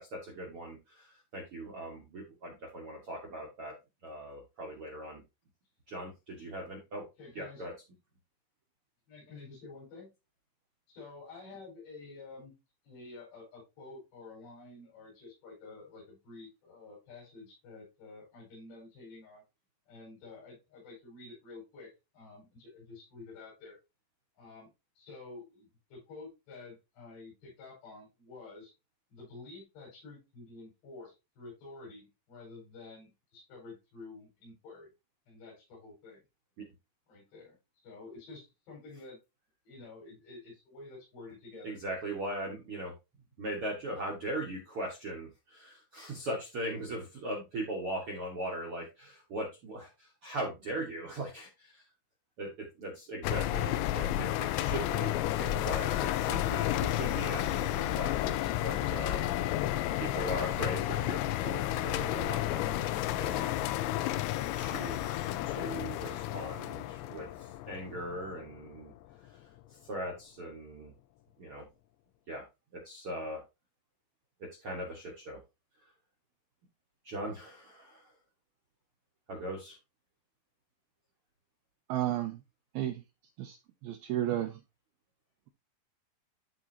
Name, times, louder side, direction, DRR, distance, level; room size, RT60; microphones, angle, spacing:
voice 1, 0.0-3.7 4.0-5.2 5.9-7.1 7.3-7.7 36.6-36.7 41.6-42.9 43.4-51.8 52.4-59.5 60.0-63.6 64.5-68.9 69.3-70.9 71.4-71.7 72.3-72.4 72.7-73.4 74.4-75.4 77.0-78.1 79.3-79.8, right 1 dB, 65° right, 1.4 m, -40 dB
voice 2, 7.2-7.7 9.1-10.1 10.9-12.5 12.8-19.4 19.9-23.8 24.4-28.7 29.1-34.9 35.3-36.2 37.1-37.6 37.8-39.2 39.7-41.8, left 3 dB, 70° left, 7.1 m, -50 dB
sound 1, 53.2-68.7, left 13 dB, 90° left, 2.9 m, -32 dB
voice 3, 81.9-82.4 82.8-83.0 83.4-83.6 83.8-84.6, right 12 dB, 80° right, 2.2 m, -32 dB
13.0 x 4.4 x 2.8 m
omnidirectional pair, 5.1 m